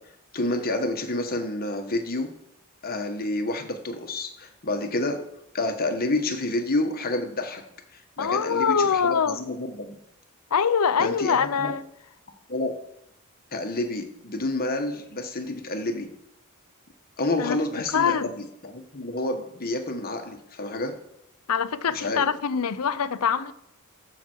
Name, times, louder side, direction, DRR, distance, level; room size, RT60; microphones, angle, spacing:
voice 1, 0.3-2.3 2.8-5.2 5.5-7.6 7.9-10.0 11.0-11.7 12.5-12.7 13.5-16.1 17.2-20.9 21.9-22.3, left 2 dB, 45° left, 1.4 m, -29 dB
voice 2, 8.2-9.4 10.5-11.8 17.4-17.6 17.9-18.3 21.5-23.5, left 6 dB, 85° left, 0.6 m, -24 dB
14.0 x 6.0 x 4.6 m
head